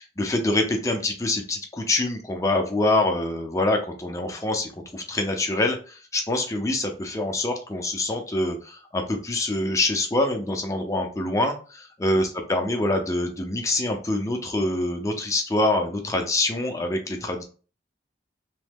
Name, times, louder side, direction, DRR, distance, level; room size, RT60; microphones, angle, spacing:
voice 1, 0.2-17.4, left 2 dB, 15° left, 3 dB, 0.5 m, -25 dB
3.0 x 2.1 x 3.4 m, 0.37 s
head